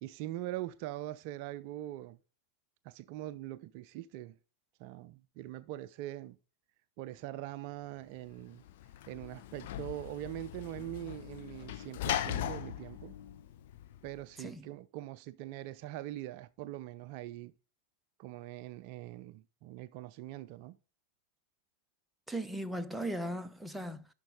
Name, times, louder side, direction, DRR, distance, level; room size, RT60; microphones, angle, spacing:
voice 1, 0.0-2.2 2.8-4.3 4.8-6.4 7.0-8.6 9.1-13.2 14.0-17.5 18.2-20.8, right 14 dB, 45° right, 0.4 m, -42 dB
Sliding door / Slam, 8.3-14.2, left 11 dB, 50° left, 0.8 m, -39 dB
voice 2, 22.3-24.1, right 1 dB, 5° right, 0.7 m, -38 dB
11.5 x 5.3 x 3.8 m
figure-of-eight pair, 90°, 0 cm